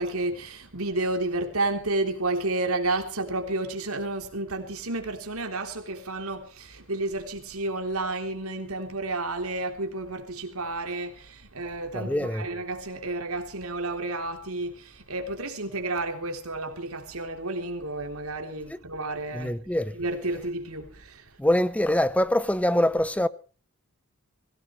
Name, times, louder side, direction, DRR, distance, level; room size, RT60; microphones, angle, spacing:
voice 1, 0.0-19.5 19.9-21.4, right 2 dB, 80° right, 3.6 m, -31 dB
voice 2, 11.9-12.4 18.7-18.8 19.3-19.9 21.4-23.3, left 1 dB, 5° left, 0.7 m, -24 dB
21.5 x 17.5 x 3.3 m
head